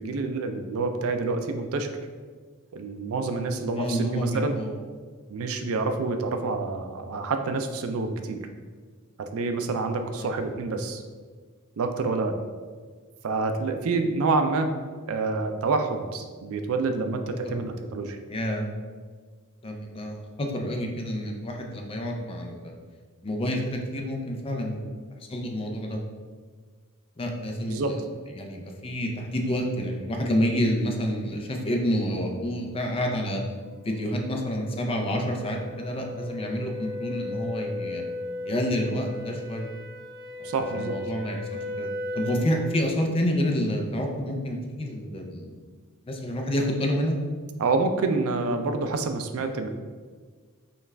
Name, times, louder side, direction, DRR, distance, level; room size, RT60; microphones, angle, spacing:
voice 1, 0.0-1.9 2.7-4.6 5.3-8.4 9.2-11.0 11.8-12.4 13.2-14.7 15.1-18.2 27.7-27.9 40.4-41.0 47.6-49.7, right 3 dB, 65° right, 7 dB, 0.4 m, -27 dB
voice 2, 3.8-4.8 10.1-10.3 17.5-17.6 18.3-18.7 19.6-22.8 23.2-24.9 25.3-26.0 27.2-28.0 28.3-33.4 33.8-38.0 38.4-39.7 40.4-41.9 42.1-45.5 46.1-47.2, equal, 25° left, 2 dB, 0.5 m, -28 dB
sound 1, 32.8-42.8, left 2 dB, ahead, 0.9 m, -36 dB
5.4 x 2.4 x 3.2 m, 1.5 s
head